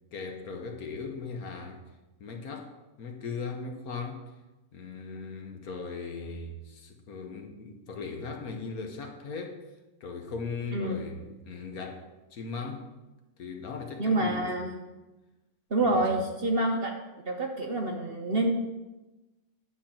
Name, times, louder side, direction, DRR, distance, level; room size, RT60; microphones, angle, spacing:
voice 1, 0.1-1.8 2.2-2.7 3.0-4.3 4.7-9.7 10.0-12.9 13.4-14.5 15.8-16.2, left 4 dB, 65° left, 1.5 m, -38 dB
voice 2, 14.0-14.7 15.7-16.9 17.3-18.5, right 2 dB, 45° right, 1.0 m, -27 dB
9.5 x 4.6 x 7.3 m
omnidirectional pair, 1.7 m